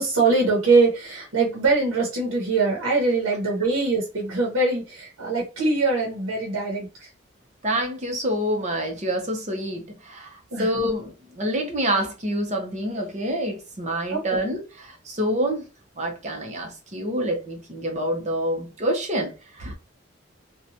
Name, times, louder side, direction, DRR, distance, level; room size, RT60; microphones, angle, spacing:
voice 1, 0.0-7.1 10.5-10.7 14.1-14.4, right 3 dB, 85° right, 0.8 m, -23 dB
voice 2, 7.6-15.7 16.0-19.7, equal, 35° right, 0.7 m, -27 dB
2.9 x 2.2 x 2.5 m
head